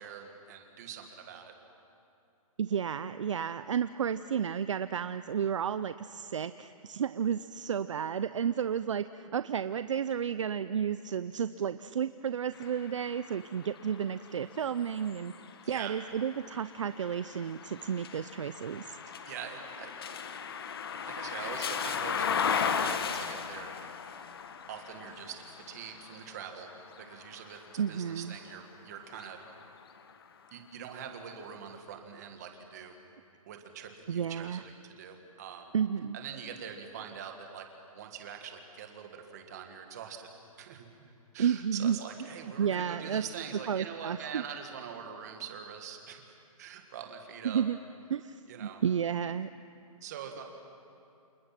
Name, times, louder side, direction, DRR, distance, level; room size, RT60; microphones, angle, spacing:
voice 1, 0.0-1.5 15.6-15.9 19.3-19.9 21.1-23.7 24.7-26.7 27.0-29.4 30.5-33.0 33.5-35.7 36.1-40.3 40.6-40.9 41.3-46.2 46.6-47.6 48.5-48.8 50.0-50.4, right 7 dB, 25° right, 4 dB, 2.0 m, -44 dB
voice 2, 2.6-15.3 15.7-19.0 27.8-28.3 34.1-34.6 35.7-36.2 41.4-42.0 42.6-43.2 43.7-44.4 47.4-47.8 48.1-49.5, right 8 dB, 55° right, 13 dB, 0.6 m, -32 dB
sound 1, 12.5-28.5 29.0-30.3, left 6 dB, 40° left, 1.2 m, -37 dB
29.0 x 28.0 x 6.0 m, 2.7 s
hypercardioid pair, 175°, 19 cm